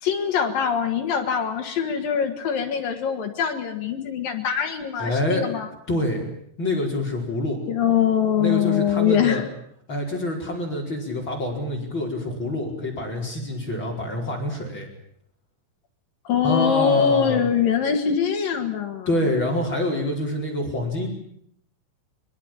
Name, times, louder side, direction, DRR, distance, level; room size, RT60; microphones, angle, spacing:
voice 1, 0.0-5.7 7.7-9.5 16.2-19.1, left 8 dB, 55° left, 5 dB, 2.9 m, -23 dB
voice 2, 5.0-5.4 5.9-6.2 6.6-7.6 8.4-9.4 9.9-14.9 16.4-17.4 19.1-21.1, left 1 dB, 25° left, 0 dB, 5.0 m, -26 dB
23.0 x 22.5 x 8.9 m, 0.69 s
omnidirectional pair, 5.9 m